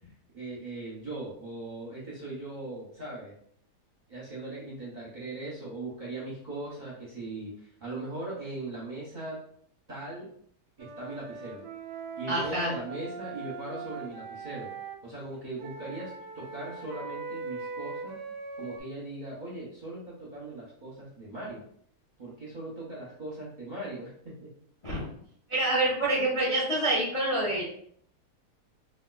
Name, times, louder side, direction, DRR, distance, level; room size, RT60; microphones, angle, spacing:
voice 1, 0.3-3.3 4.1-9.3 9.9-10.3 10.8-11.7 12.2-14.7 15.0-18.2 18.6-21.6 22.2-24.5, right 2 dB, 40° right, -6 dB, 0.7 m, -39 dB
Wind instrument woodwind instrument, 10.8-15.0 15.6-18.8, right 4 dB, 90° right, 1.2 m, -40 dB
voice 2, 12.3-12.7 24.8-25.0 25.5-27.7, right 1 dB, 30° left, -5 dB, 0.5 m, -27 dB
4.2 x 2.4 x 2.3 m, 0.65 s
omnidirectional pair, 1.7 m